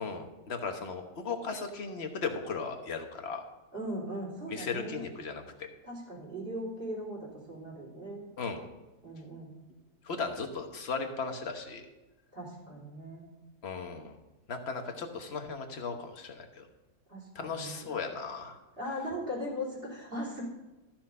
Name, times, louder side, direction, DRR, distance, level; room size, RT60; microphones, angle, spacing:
voice 1, 0.0-3.5 4.5-5.7 8.4-8.7 10.0-11.9 13.6-14.2 14.5-16.7 17.3-18.6, left 4 dB, 45° left, 5 dB, 1.3 m, -36 dB
voice 2, 3.7-5.0 5.8-8.3 9.0-9.5 12.3-13.3 17.1-17.9 18.8-20.5, equal, 35° right, -3 dB, 3.7 m, -39 dB
13.5 x 6.0 x 5.4 m, 1.1 s
omnidirectional pair, 1.7 m